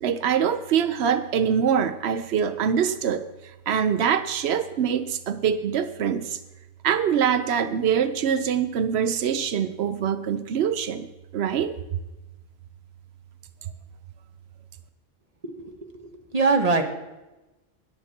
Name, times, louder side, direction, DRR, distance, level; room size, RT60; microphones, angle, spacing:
voice 1, 0.0-3.3 3.7-6.4 6.8-11.1 11.3-11.7, right 8 dB, 90° right, 11 dB, 0.9 m, -24 dB
voice 2, 15.4-16.8, right 4 dB, 40° right, 4 dB, 1.5 m, -24 dB
20.5 x 7.1 x 4.3 m, 1.1 s
omnidirectional pair, 1.1 m